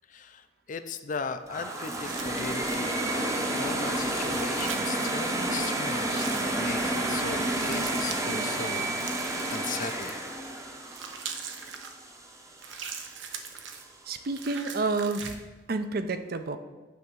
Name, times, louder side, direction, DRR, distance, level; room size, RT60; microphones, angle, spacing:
voice 1, 0.1-6.2 6.6-9.2 9.5-10.1, left 5 dB, 45° left, 10 dB, 0.4 m, -37 dB
sound 1, 1.5-12.5, right 1 dB, 15° right, 0.8 m, -30 dB
sound 2, 1.7-3.0 4.1-5.2 6.1-6.6 7.5-8.2 9.0-10.3 10.9-11.9 12.6-13.9 14.3-15.4, right 6 dB, 85° right, 0.8 m, -41 dB
voice 2, 14.1-15.4 15.7-16.6, right 3 dB, 55° right, 9 dB, 0.6 m, -29 dB
9.4 x 3.5 x 6.7 m, 1.2 s
head